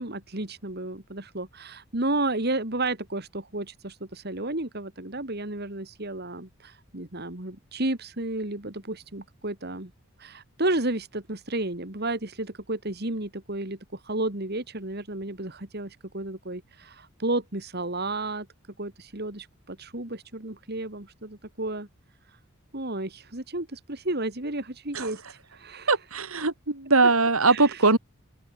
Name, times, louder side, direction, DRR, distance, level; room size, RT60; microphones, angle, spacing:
voice 1, 0.0-9.9 10.2-18.5 18.8-21.9 22.7-25.2 25.5-26.0 27.5-27.8, right 2 dB, 50° right, 2.6 m, -32 dB
voice 2, 25.9-28.0, right 3 dB, 85° right, 3.3 m, -21 dB
head